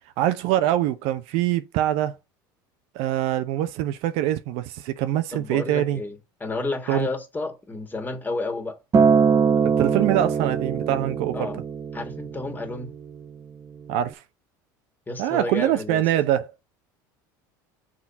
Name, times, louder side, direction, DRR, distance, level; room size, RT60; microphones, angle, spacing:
voice 1, 0.2-2.2 2.9-6.0 6.9-7.1 9.6-11.5 13.9-14.2 15.2-16.5, right 12 dB, 65° right, 0.8 m, -24 dB
voice 2, 5.3-8.8 11.3-11.6 11.9-12.9 15.1-16.0, left 2 dB, 15° left, 2.0 m, -31 dB
Acoustic guitar, 8.9-13.2 14.1-14.2, right 6 dB, 30° right, 1.0 m, -22 dB
6.1 x 4.3 x 5.4 m
hypercardioid pair, 80°, 11 cm